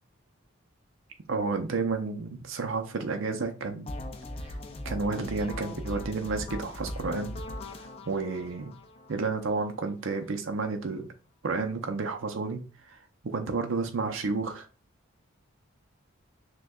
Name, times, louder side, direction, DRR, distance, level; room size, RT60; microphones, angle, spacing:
voice 1, 1.3-3.9 4.8-7.4 8.1-8.7 9.1-11.1 11.4-13.0 13.2-14.7, right 4 dB, 70° right, 5 dB, 0.6 m, -31 dB
sound 1, 3.9-9.8, left 1 dB, 30° left, 0.4 m, -39 dB
6.2 x 2.2 x 2.3 m, 0.35 s
head